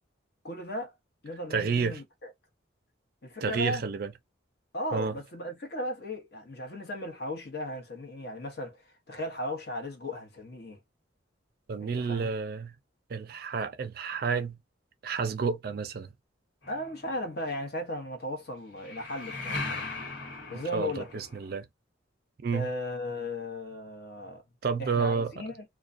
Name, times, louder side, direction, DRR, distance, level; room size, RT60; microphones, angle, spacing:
voice 1, 0.4-0.9 1.2-2.3 3.2-3.8 4.7-10.8 11.8-12.3 16.7-19.8 20.5-21.1 22.5-24.4 24.8-25.6, left 1 dB, 55° left, 0.8 m, -36 dB
voice 2, 1.5-2.0 3.4-4.1 4.9-5.1 11.7-12.7 13.1-14.6 15.0-16.1 20.5-21.6 22.4-22.7 24.6-25.3, right 5 dB, 50° right, 0.4 m, -30 dB
sound 1, 16.6-17.5 18.8-21.6, left 3 dB, 70° left, 1.4 m, -38 dB
2.3 x 2.2 x 2.5 m
head